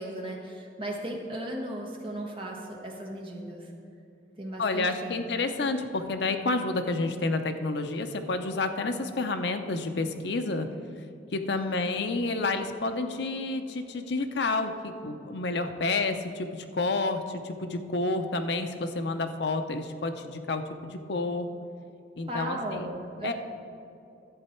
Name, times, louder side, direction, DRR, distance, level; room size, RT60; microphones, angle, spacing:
voice 1, 0.0-3.7 4.4-5.2 11.5-11.9 22.3-23.3, right 1 dB, 30° right, -1 dB, 1.2 m, -36 dB
voice 2, 4.6-10.7 11.3-21.5 22.2-22.9 23.2-23.3, left 3 dB, 70° left, 7 dB, 0.6 m, -30 dB
11.0 x 7.8 x 4.4 m, 2.8 s
head